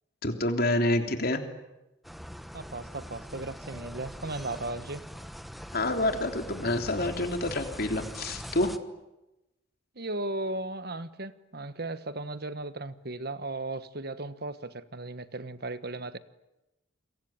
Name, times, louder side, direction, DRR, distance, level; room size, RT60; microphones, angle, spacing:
voice 1, 0.2-1.4 5.7-8.7, left 1 dB, 50° left, 5 dB, 3.4 m, -28 dB
sound 1, 2.0-8.8, equal, ahead, 1.1 m, -42 dB
voice 2, 2.5-5.0 9.9-16.2, right 2 dB, 55° right, 13 dB, 1.4 m, -36 dB
28.5 x 23.0 x 8.9 m, 0.96 s
head